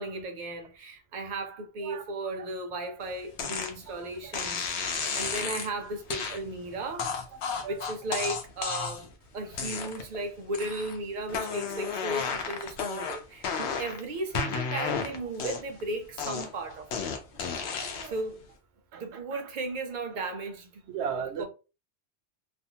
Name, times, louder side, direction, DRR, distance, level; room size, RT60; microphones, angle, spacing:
voice 1, 0.0-7.2 7.6-9.1 9.3-17.0 18.0-18.4 18.9-20.8 21.4-21.5, right 2 dB, 50° right, 0.7 m, -35 dB
sound 1, 3.4-3.7 4.3-5.7 6.1-6.4 7.0-9.1 9.5-10.2 10.5-11.0 11.3-14.0 14.3-15.8 16.2-18.2, left 5 dB, 75° left, 0.9 m, -32 dB
voice 2, 17.6-18.1 18.9-19.0 20.9-21.4, right 7 dB, 75° right, 0.9 m, -36 dB
2.6 x 2.1 x 2.7 m
omnidirectional pair, 1.2 m